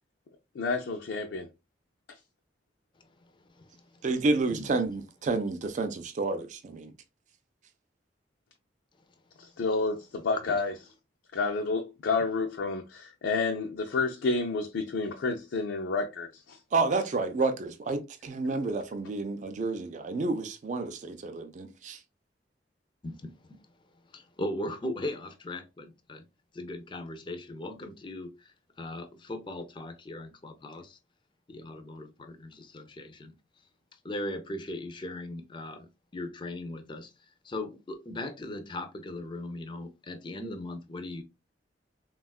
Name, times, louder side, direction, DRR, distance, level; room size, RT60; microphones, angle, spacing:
voice 1, 0.5-1.5 9.4-10.7 11.3-16.6, left 3 dB, 85° left, 0.4 m, -30 dB
voice 2, 4.0-6.9 16.7-22.0, right 3 dB, 40° right, 0.4 m, -30 dB
voice 3, 23.0-23.3 24.1-26.2 26.5-31.0 31.5-33.3 34.0-37.1 37.4-41.2, left 1 dB, 25° left, 0.4 m, -38 dB
3.5 x 2.3 x 2.2 m
head